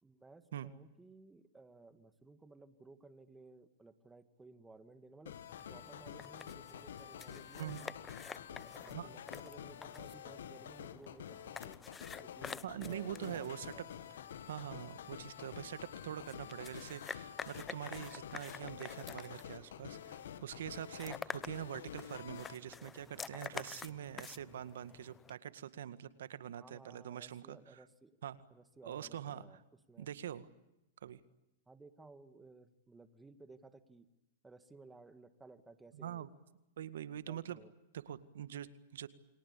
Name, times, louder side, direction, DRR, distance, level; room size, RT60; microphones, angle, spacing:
voice 1, 0.0-5.4 5.7-8.0 8.5-11.8 12.2-13.9 26.6-28.2 28.5-29.6 29.9-30.1 31.7-34.1 34.4-36.3 37.3-37.7, right 3 dB, 10° right, 10 dB, 2.1 m, -58 dB
sound 1, 5.3-22.5, left 9 dB, 80° left, 1.9 m, -49 dB
sound 2, 5.5-25.3, left 6 dB, 15° left, 0.9 m, -50 dB
voice 2, 12.6-13.7 14.5-27.8 28.2-28.4 28.8-29.6 30.0-30.5 31.0-31.2 35.9-36.3 36.8-37.6 37.9-39.1, right 10 dB, 80° right, 14 dB, 1.9 m, -44 dB
29.5 x 23.5 x 8.6 m, 0.93 s
hypercardioid pair, 140°, 0 cm